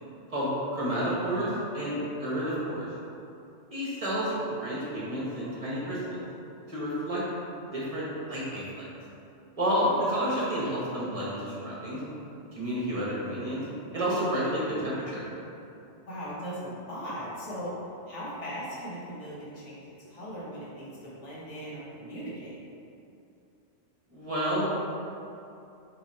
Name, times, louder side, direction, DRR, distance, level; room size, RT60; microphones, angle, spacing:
voice 1, 0.7-2.9 3.7-6.2 6.7-7.2 7.7-8.8 9.6-12.0 12.5-13.6 13.9-15.2 24.1-24.6, equal, 30° right, -8 dB, 0.9 m, -30 dB
voice 2, 16.1-17.7 18.1-19.8 20.1-22.5, equal, 70° left, -8 dB, 1.4 m, -38 dB
3.7 x 2.6 x 4.1 m, 2.7 s
omnidirectional pair, 1.2 m